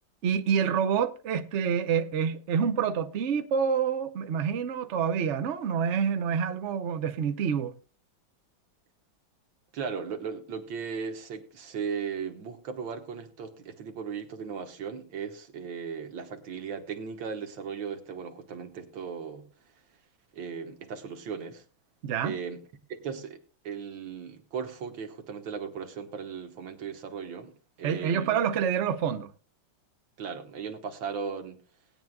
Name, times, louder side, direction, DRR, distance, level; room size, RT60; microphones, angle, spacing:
voice 1, 0.2-7.7 22.0-22.3 27.8-29.3, right 7 dB, 55° right, 0.8 m, -27 dB
voice 2, 9.7-19.5 20.3-21.6 22.2-22.6 22.9-23.4 23.6-27.5 27.8-28.4 30.2-31.6, right 6 dB, 80° right, 2.1 m, -37 dB
19.5 x 9.2 x 2.3 m
omnidirectional pair, 2.1 m